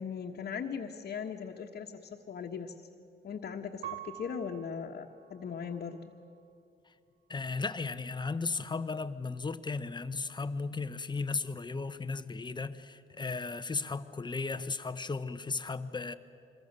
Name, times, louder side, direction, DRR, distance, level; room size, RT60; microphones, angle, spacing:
voice 1, 0.0-2.7 3.2-6.1, left 6 dB, 55° left, -1 dB, 1.4 m, -39 dB
Piano, 3.8-6.6 7.2-7.9, right 12 dB, 70° right, 1.0 m, -48 dB
voice 2, 7.3-16.2, left 4 dB, 20° left, 12 dB, 0.9 m, -35 dB
25.0 x 21.5 x 6.8 m, 2.5 s
cardioid pair, 90°, 20 cm